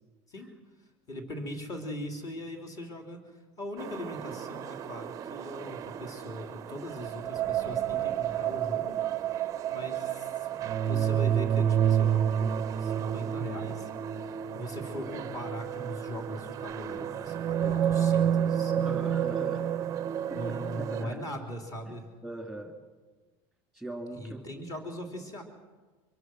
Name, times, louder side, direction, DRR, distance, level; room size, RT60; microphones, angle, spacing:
voice 1, 1.1-3.2 3.6-9.0 9.7-13.9 14.5-18.7 20.3-22.1 24.1-25.4, equal, 30° left, 3 dB, 3.4 m, -40 dB
sound 1, 3.8-21.0, right 9 dB, 25° right, 0.7 m, -30 dB
voice 2, 18.8-19.7 20.3-21.2 22.2-22.7 23.7-24.5, right 1 dB, ahead, 2 dB, 2.6 m, -39 dB
24.5 x 22.5 x 6.2 m, 1.3 s
cardioid pair, 165°, 13 cm